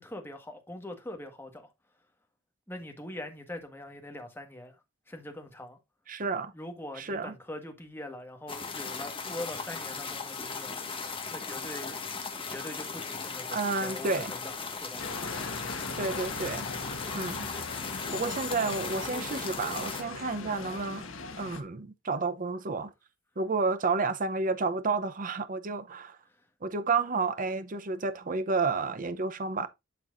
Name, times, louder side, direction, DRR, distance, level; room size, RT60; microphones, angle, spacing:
voice 1, 0.0-1.7 2.7-4.8 5.1-5.8 6.5-10.8 11.3-12.0 12.5-15.0 26.3-26.5, left 1 dB, 10° left, 1.5 m, -42 dB
voice 2, 6.1-6.5 7.0-7.3 13.5-14.3 16.0-16.7 17.1-17.5 18.1-21.1 21.4-22.9 23.4-26.2 26.6-29.7, right 4 dB, 40° right, 0.7 m, -30 dB
sound 1, 8.5-20.0, left 5 dB, 25° left, 1.5 m, -37 dB
sound 2, 15.0-21.6, left 3 dB, 70° left, 1.4 m, -39 dB
11.5 x 4.6 x 2.5 m
head